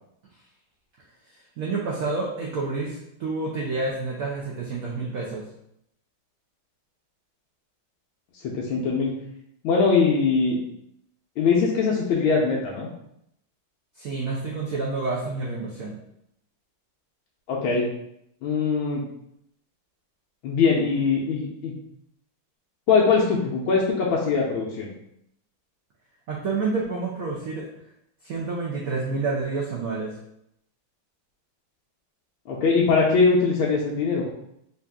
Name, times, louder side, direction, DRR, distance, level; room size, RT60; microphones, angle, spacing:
voice 1, 1.6-5.4 14.0-16.0 26.3-27.6 28.2-30.1, right 3 dB, 90° right, -4 dB, 0.7 m, -29 dB
voice 2, 8.4-9.1 9.6-10.6 11.4-12.9 17.5-17.9 18.4-19.0 20.4-21.7 22.9-24.9 32.5-34.3, left 4 dB, 80° left, -3 dB, 1.4 m, -22 dB
4.1 x 2.4 x 3.4 m, 0.77 s
omnidirectional pair, 2.3 m